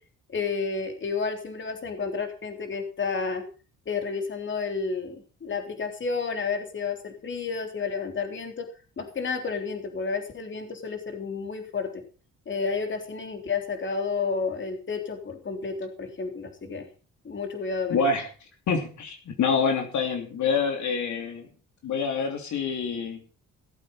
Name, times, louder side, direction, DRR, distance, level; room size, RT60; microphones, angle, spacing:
voice 1, 0.3-3.4 3.9-8.6 9.0-12.0 12.5-16.8 17.2-18.0, left 5 dB, 40° left, 5 dB, 3.5 m, -31 dB
voice 2, 17.9-18.3 18.7-21.5 21.8-23.2, left 5 dB, 70° left, 4 dB, 3.2 m, -26 dB
17.0 x 8.2 x 5.8 m, 0.37 s
cardioid pair, 90°, 30 cm